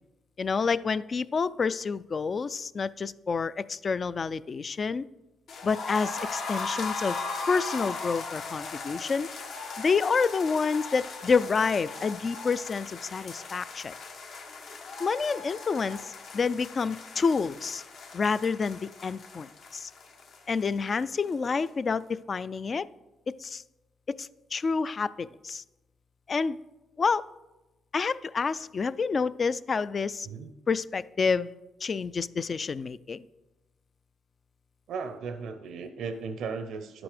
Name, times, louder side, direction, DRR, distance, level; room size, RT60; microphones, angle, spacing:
voice 1, 0.4-5.0 5.6-7.2 7.5-9.3 9.8-13.9 15.0-17.8 18.1-19.9 20.5-22.9 23.3-23.6 24.1-25.6 26.3-26.6 27.0-27.2 27.9-30.3 30.7-31.5 31.8-33.3, left 5 dB, 40° left, 18 dB, 0.3 m, -28 dB
sound 1, 5.5-21.3 21.6-21.7 22.0-22.1, left 4 dB, 70° left, 1.2 m, -38 dB
voice 2, 34.9-37.0, right 5 dB, 75° right, 8 dB, 0.6 m, -36 dB
11.0 x 6.0 x 5.0 m, 1.0 s
cardioid pair, 90°, 0 cm